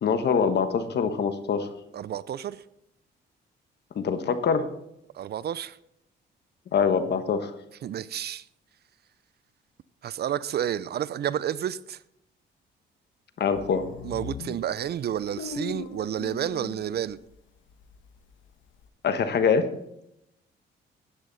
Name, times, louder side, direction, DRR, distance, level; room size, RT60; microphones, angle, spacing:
voice 1, 0.0-1.7 3.9-4.6 6.7-7.5 13.4-13.9 19.0-19.7, left 6 dB, 60° left, 1.3 m, -24 dB
voice 2, 1.9-2.6 5.1-5.8 7.8-8.5 10.0-12.0 14.0-17.2, right 10 dB, 55° right, 0.5 m, -30 dB
sound 1, 13.5-17.4 17.7-18.9, left 6 dB, 75° left, 1.1 m, -39 dB
14.0 x 9.8 x 4.1 m
cardioid pair, 90°, 20 cm